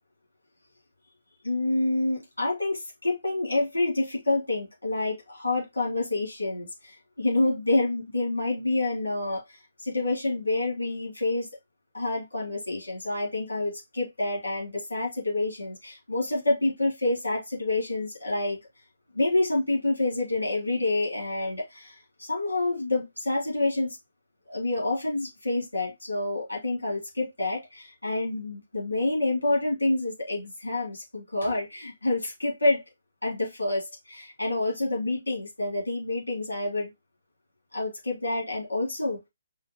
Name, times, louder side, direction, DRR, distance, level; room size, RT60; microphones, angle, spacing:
voice 1, 1.4-9.4 9.8-11.5 11.9-18.6 19.1-24.0 24.5-32.8 33.2-36.9 37.7-39.2, left 2 dB, 75° left, 2.8 m, -28 dB
5.6 x 2.6 x 2.9 m
figure-of-eight pair, 135°, 0 cm